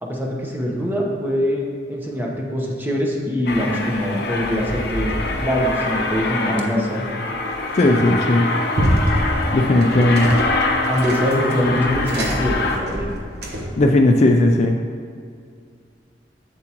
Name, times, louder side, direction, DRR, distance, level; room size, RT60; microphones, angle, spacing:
voice 1, 0.0-7.1 10.0-10.1 10.9-13.1, equal, 10° right, -2 dB, 1.0 m, -23 dB
Aircraft, 3.5-12.8, left 2 dB, 65° left, 0.7 m, -24 dB
voice 2, 7.7-8.5 9.5-10.4 13.8-14.8, left 1 dB, 40° left, 3 dB, 0.4 m, -16 dB
sound 1, 7.8-8.3 8.7-13.8, equal, 65° right, 1.1 m, -26 dB
7.6 x 7.4 x 3.0 m, 2.2 s
head